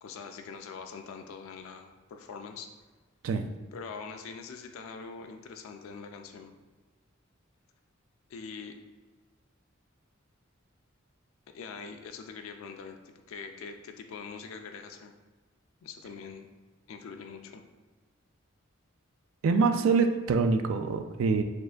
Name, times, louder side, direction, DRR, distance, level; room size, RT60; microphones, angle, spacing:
voice 1, 0.0-2.7 3.7-6.5 8.3-8.8 11.5-15.1 15.8-16.5 16.9-17.6, left 5 dB, 85° left, 5 dB, 0.4 m, -43 dB
voice 2, 19.4-21.4, right 4 dB, 80° right, 7 dB, 0.3 m, -25 dB
6.5 x 2.4 x 2.3 m, 1.3 s
head